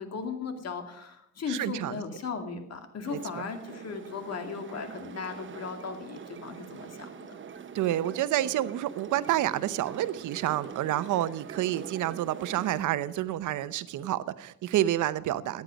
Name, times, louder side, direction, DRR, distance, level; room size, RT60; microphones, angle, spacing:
voice 1, 0.0-7.4, left 5 dB, 55° left, 6 dB, 2.4 m, -37 dB
voice 2, 1.5-1.9 3.1-3.2 7.7-15.6, right 13 dB, 80° right, 15 dB, 0.8 m, -29 dB
sound 1, 3.0-12.8, right 7 dB, 40° right, 1.0 m, -44 dB
14.5 x 9.5 x 5.2 m, 0.82 s
cardioid pair, 90°, 30 cm